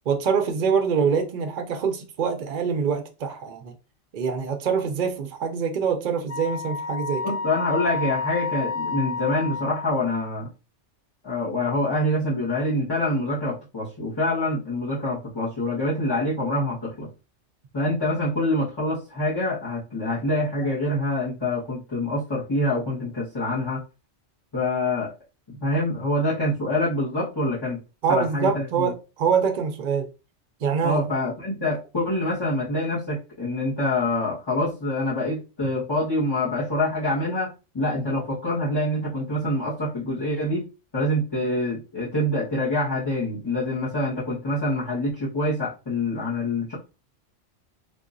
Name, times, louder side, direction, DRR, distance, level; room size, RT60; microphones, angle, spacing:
voice 1, 0.1-3.7 4.1-7.3 28.0-30.1 30.6-31.0, right 6 dB, 55° right, 0.6 m, -25 dB
Wind instrument woodwind instrument, 6.3-10.1, left 4 dB, 85° left, 0.3 m, -30 dB
voice 2, 7.2-10.5 11.2-17.1 17.7-23.8 24.5-25.1 25.5-27.8 28.1-28.9 30.8-40.6 40.9-46.7, left 1 dB, 20° left, 1.2 m, -26 dB
3.9 x 2.8 x 2.5 m
omnidirectional pair, 1.2 m